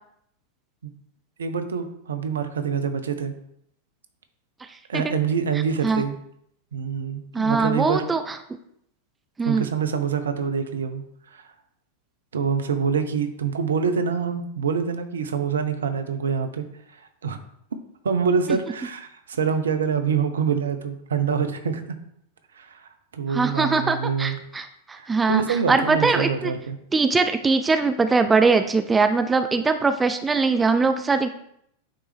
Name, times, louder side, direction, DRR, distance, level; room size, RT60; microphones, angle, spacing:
voice 1, 1.4-3.3 4.9-6.2 6.7-8.1 9.4-11.0 11.3-11.4 12.3-16.6 17.2-17.4 18.0-22.0 22.6-24.4 25.0-26.8, right 6 dB, 65° right, 8 dB, 0.6 m, -25 dB
voice 2, 7.3-8.4 9.4-9.7 23.3-26.5 26.9-31.3, right 4 dB, 15° right, 8 dB, 0.4 m, -21 dB
8.9 x 3.2 x 3.4 m, 0.72 s
figure-of-eight pair, 90°, 0 cm